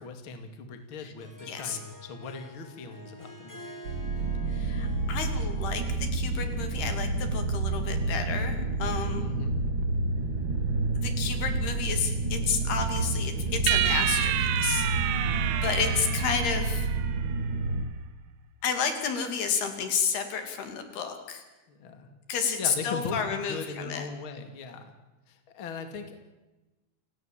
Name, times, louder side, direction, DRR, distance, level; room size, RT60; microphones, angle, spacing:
voice 1, 0.0-3.8 9.2-9.6 15.2-15.6 21.7-22.1 22.6-24.9 25.3-26.2, left 4 dB, 35° left, 7 dB, 2.7 m, -39 dB
Harp, 0.8-6.1, equal, 5° left, 4.3 m, -48 dB
voice 2, 1.5-1.8 4.5-9.3 11.0-14.9 15.6-16.9 18.6-21.4 22.3-24.1, left 6 dB, 75° left, 7 dB, 4.7 m, -31 dB
sound 1, 3.8-17.8, right 3 dB, 35° right, 2.4 m, -29 dB
sound 2, 13.7-17.2, right 11 dB, 70° right, 2.9 m, -29 dB
29.5 x 17.5 x 7.6 m, 1.1 s
omnidirectional pair, 4.7 m